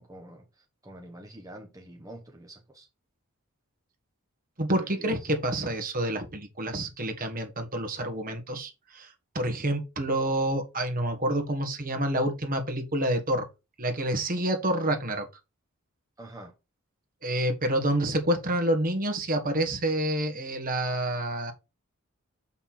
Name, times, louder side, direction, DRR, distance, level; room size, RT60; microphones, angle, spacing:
voice 1, 0.0-2.9 4.7-5.3 16.2-16.5, right 1 dB, 15° right, 1.2 m, -47 dB
voice 2, 4.6-13.5 13.8-15.3 17.2-21.5, right 1 dB, 40° right, 1.7 m, -28 dB
6.9 x 5.6 x 4.3 m
head